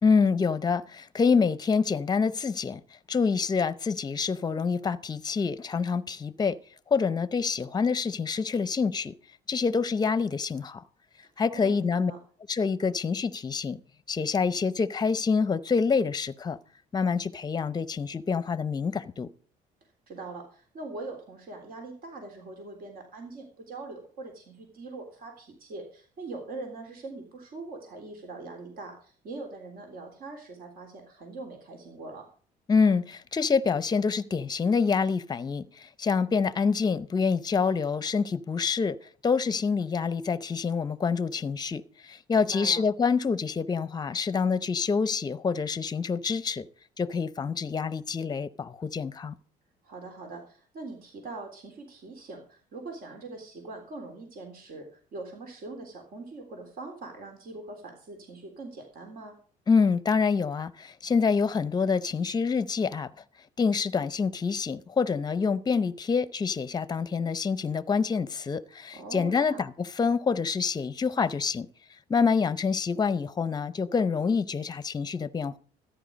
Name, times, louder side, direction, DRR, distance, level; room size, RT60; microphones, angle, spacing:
voice 1, 0.0-2.8 3.1-6.6 6.9-9.1 9.5-10.8 11.4-12.1 12.5-13.8 14.1-16.6 16.9-19.3 32.7-39.0 39.2-46.7 47.0-49.3 59.7-63.1 63.6-71.7 72.1-75.6, left 5 dB, 25° left, 0.7 m, -26 dB
voice 2, 11.2-12.2 20.1-32.3 42.3-42.8 49.8-59.4 68.9-69.6, right 3 dB, 60° right, 3.5 m, -42 dB
14.0 x 10.0 x 5.2 m
cardioid pair, 110°, 17 cm